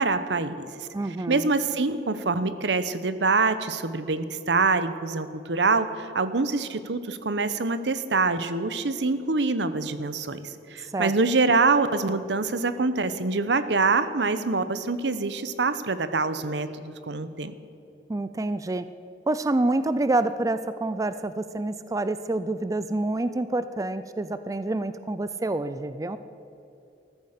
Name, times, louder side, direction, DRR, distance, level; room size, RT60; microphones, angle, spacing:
voice 1, 0.0-0.9 1.3-17.5, right 3 dB, 75° right, 12 dB, 0.9 m, -25 dB
voice 2, 0.9-1.5 10.8-11.1 18.1-18.9 19.3-26.2, right 2 dB, 20° right, 12 dB, 0.4 m, -27 dB
14.0 x 14.0 x 6.7 m, 2.8 s
head